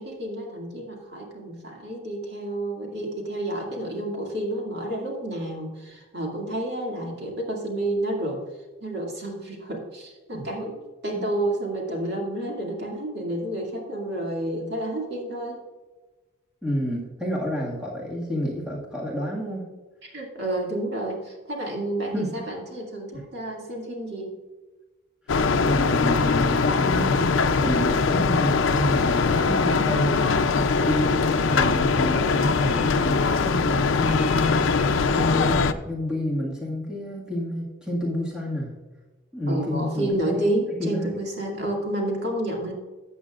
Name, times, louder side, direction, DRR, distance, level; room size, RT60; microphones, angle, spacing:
voice 1, 0.0-8.4 8.8-15.6 20.0-24.3 39.5-42.7, right 1 dB, 55° right, -1 dB, 2.3 m, -30 dB
voice 2, 16.6-19.6 22.1-22.3 23.1-23.2 25.6-27.3 27.6-34.9 35.1-38.7 39.3-40.4 40.8-41.1, equal, 5° right, -4 dB, 1.9 m, -29 dB
sound 1, 25.3-35.7, left 4 dB, 80° left, 0.5 m, -22 dB
14.0 x 8.2 x 2.5 m, 1.2 s
head